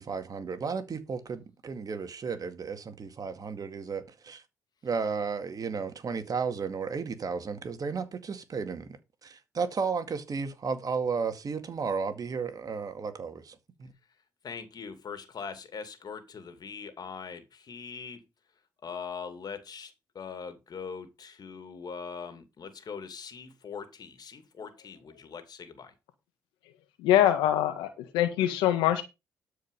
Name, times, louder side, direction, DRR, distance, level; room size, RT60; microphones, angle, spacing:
voice 1, 0.0-4.4 4.8-9.0 9.2-13.9, right 5 dB, 50° right, 2.1 m, -33 dB
voice 2, 14.4-18.2 18.8-25.9, left 6 dB, 55° left, 2.5 m, -41 dB
voice 3, 27.0-29.0, left 12 dB, 90° left, 1.5 m, -24 dB
12.5 x 5.1 x 5.4 m
supercardioid pair, 50°, 8 cm